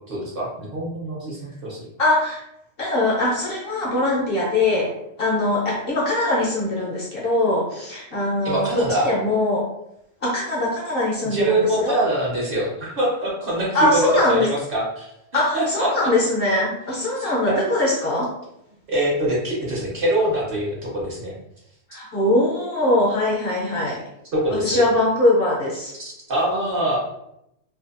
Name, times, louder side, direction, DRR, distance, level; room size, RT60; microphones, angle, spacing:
voice 1, 0.1-1.9 8.4-9.1 11.2-15.9 16.9-17.6 18.9-21.3 24.3-24.8 26.0-27.0, right 1 dB, 50° right, -5 dB, 0.8 m, -24 dB
voice 2, 2.0-2.4 2.8-4.9 5.2-9.6 10.2-12.0 13.7-14.5 15.3-18.3 21.9-24.0 24.6-25.9, left 1 dB, 55° left, -4 dB, 0.7 m, -21 dB
2.6 x 2.2 x 2.4 m, 0.81 s
omnidirectional pair, 1.3 m